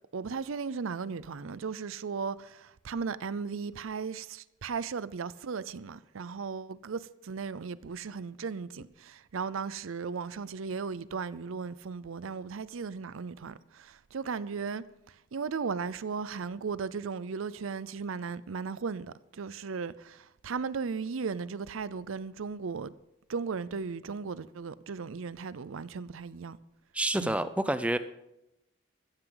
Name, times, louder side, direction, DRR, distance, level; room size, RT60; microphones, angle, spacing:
voice 1, 0.1-22.9 23.3-26.6 27.2-27.4, right 5 dB, 85° right, 0.5 m, -36 dB
voice 2, 26.9-28.0, right 1 dB, 5° right, 0.5 m, -28 dB
15.5 x 14.0 x 3.9 m
head